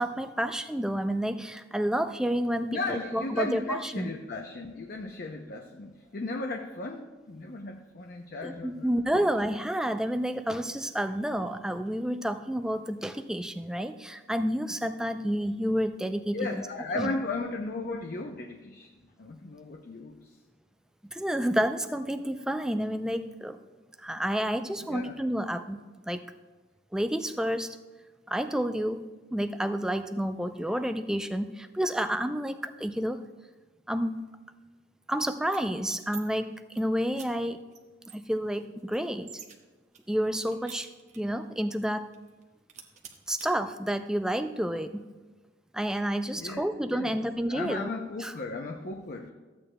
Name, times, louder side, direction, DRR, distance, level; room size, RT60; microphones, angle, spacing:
voice 1, 0.0-4.1 8.4-16.6 16.9-17.1 21.1-23.6 24.0-25.8 26.0-26.3 26.9-27.8 28.3-33.2 33.9-34.2 35.1-37.6 38.1-39.3 40.1-40.9 41.2-42.1 43.3-45.1 45.7-47.9 48.2-48.3, equal, 5° right, 8 dB, 0.3 m, -30 dB
voice 2, 2.7-9.5 11.1-11.2 16.3-18.9 19.2-20.4 24.8-25.2 46.4-47.2 47.5-49.3, left 2 dB, 50° left, 4 dB, 0.6 m, -36 dB
sound 1, 35.5-36.2 36.5-36.8 37.1-37.3 37.7-37.8 38.1-39.6 39.9-41.4 41.7-41.8 42.1-42.4 42.7-43.5, right 7 dB, 40° right, 0.9 m, -48 dB
14.5 x 8.6 x 2.2 m, 1.3 s
head